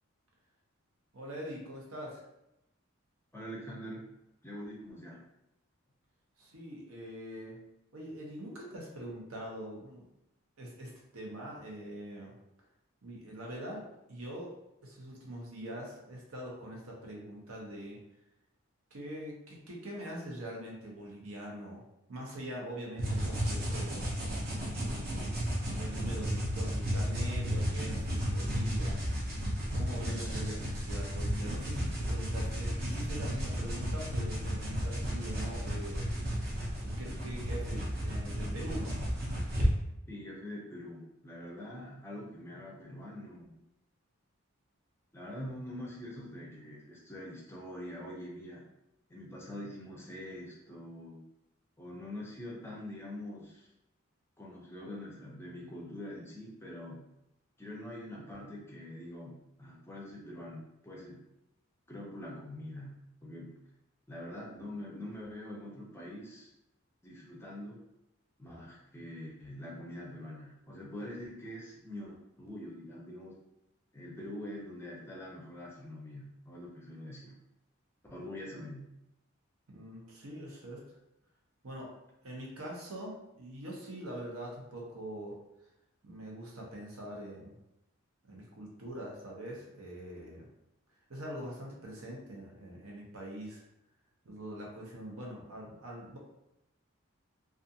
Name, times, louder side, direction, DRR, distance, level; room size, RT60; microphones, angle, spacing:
voice 1, 1.1-2.2 6.4-7.6 7.9-10.1 10.6-12.3 13.0-14.6 14.8-18.0 18.9-21.8 22.1-24.0 24.7-25.5 25.8-29.0 29.7-36.1 36.9-39.0 79.7-81.0 81.6-81.9 82.2-85.4 86.0-87.6 88.3-90.5 91.1-93.6 94.2-96.2, right 1 dB, 90° right, -2 dB, 0.8 m, -43 dB
voice 2, 3.3-4.0 4.4-5.2 40.1-43.6 45.1-48.6 49.1-51.2 51.8-53.7 54.4-57.1 57.6-61.2 61.9-63.6 64.1-66.5 67.0-67.8 68.4-73.4 73.9-77.4 78.1-78.9, left 1 dB, 10° left, -3 dB, 0.4 m, -44 dB
sound 1, 23.0-39.7, equal, 45° right, 0.7 m, -33 dB
2.4 x 2.4 x 2.7 m, 0.86 s
head